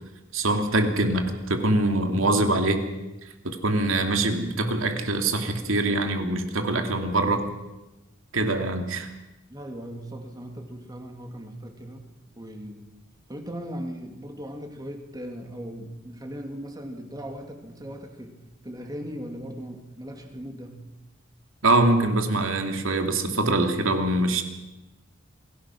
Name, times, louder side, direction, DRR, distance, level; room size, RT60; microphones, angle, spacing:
voice 1, 0.3-2.9 3.4-7.5 8.3-9.1 21.6-24.4, right 2 dB, 85° right, 5 dB, 2.7 m, -23 dB
voice 2, 9.5-12.1 12.3-12.9 13.3-18.3 18.6-20.8, equal, 20° right, 4 dB, 2.7 m, -38 dB
27.0 x 17.5 x 6.2 m, 1.0 s
head